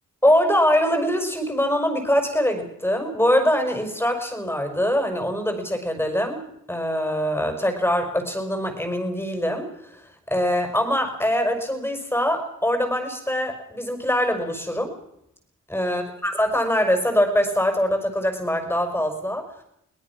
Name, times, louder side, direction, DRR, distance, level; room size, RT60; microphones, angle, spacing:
voice 1, 0.2-9.7 10.3-14.9 15.7-19.5, equal, 5° left, 5 dB, 5.6 m, -23 dB
23.5 x 18.5 x 6.1 m, 0.78 s
cardioid pair, 80°, 31 cm